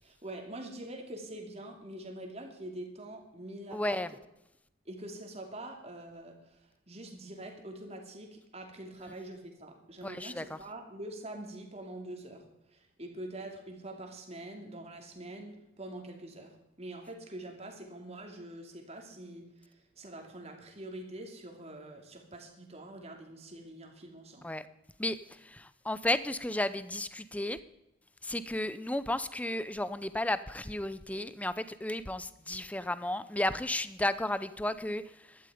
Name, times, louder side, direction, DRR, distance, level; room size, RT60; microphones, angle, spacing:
voice 1, 0.0-4.0 4.9-12.4 12.7-24.5, right 1 dB, 30° right, 3 dB, 2.7 m, -45 dB
voice 2, 3.7-4.1 10.0-10.6 24.4-24.6 25.0-27.6 28.2-35.0, left 1 dB, 5° left, 14 dB, 0.5 m, -33 dB
15.5 x 12.5 x 5.1 m, 0.89 s
head